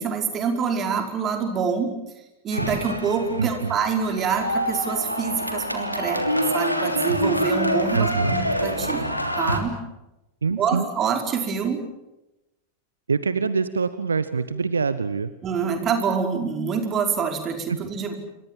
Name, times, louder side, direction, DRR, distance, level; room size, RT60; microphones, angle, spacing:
voice 1, 0.0-1.9 2.4-9.1 9.4-9.7 10.6-11.8 15.4-18.2, right 6 dB, 30° right, 5 dB, 5.2 m, -26 dB
sound 1, 2.5-9.6, equal, 90° left, 3.3 m, -26 dB
voice 2, 3.4-3.7 7.9-8.4 10.4-10.9 13.1-15.3, right 5 dB, 75° right, 15 dB, 1.0 m, -24 dB
28.0 x 25.0 x 7.6 m, 0.94 s
figure-of-eight pair, 90°, 0 cm